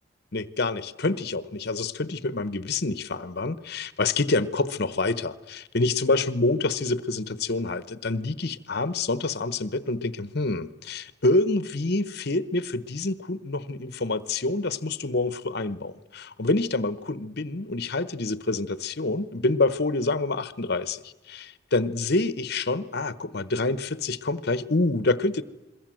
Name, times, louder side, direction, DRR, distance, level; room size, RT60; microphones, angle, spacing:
voice 1, 0.3-21.0 21.3-25.4, left 2 dB, 55° left, 1.0 m, -27 dB
28.0 x 22.0 x 7.7 m
head